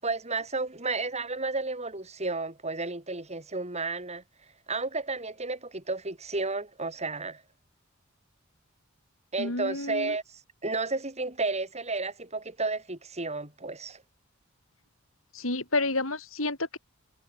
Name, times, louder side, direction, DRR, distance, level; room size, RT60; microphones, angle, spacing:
voice 1, 0.0-4.2 4.7-7.4 9.3-14.0, right 3 dB, 30° right, 7.6 m, -32 dB
voice 2, 9.4-10.1 15.3-16.8, left 2 dB, 75° left, 6.5 m, -30 dB
head